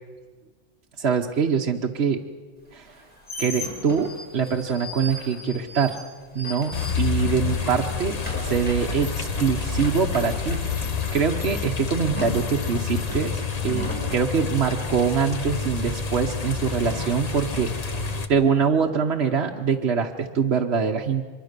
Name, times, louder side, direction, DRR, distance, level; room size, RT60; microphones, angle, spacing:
voice 1, 1.0-2.2 2.7-2.9 3.4-6.0 6.3-8.2 8.4-10.6 11.1-17.7 18.3-21.2, right 6 dB, 70° right, 1 dB, 1.3 m, -24 dB
sound 1, 2.8-7.4 7.7-14.1, equal, 10° left, 5.4 m, -37 dB
sound 2, 6.7-18.3, left 5 dB, 35° left, 1.1 m, -28 dB
24.0 x 22.5 x 6.7 m, 1.5 s
omnidirectional pair, 1.2 m